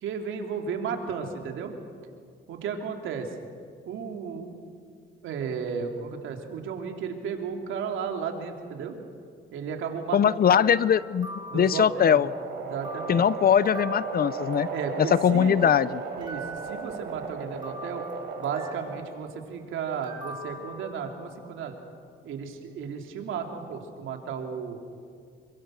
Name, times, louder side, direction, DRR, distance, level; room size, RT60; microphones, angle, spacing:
voice 1, 0.0-1.7 2.5-3.3 3.8-4.6 5.2-9.0 9.5-10.7 11.5-12.2 12.7-13.3 14.7-15.6 16.2-18.1 18.4-21.7 22.2-24.8, right 6 dB, 85° right, 3 dB, 3.1 m, -34 dB
voice 2, 10.1-11.3 11.5-12.3 13.1-14.7 15.0-15.9, left 8 dB, 50° left, 18 dB, 0.7 m, -21 dB
sound 1, 10.6-12.4 12.8-15.4 15.8-17.2 17.6-19.0 20.0-21.5, right 1 dB, 20° right, 5.0 m, -44 dB
sound 2, 11.2-19.3, right 5 dB, 60° right, 5.4 m, -36 dB
28.0 x 23.5 x 6.5 m, 2.1 s
cardioid pair, 90°, 20 cm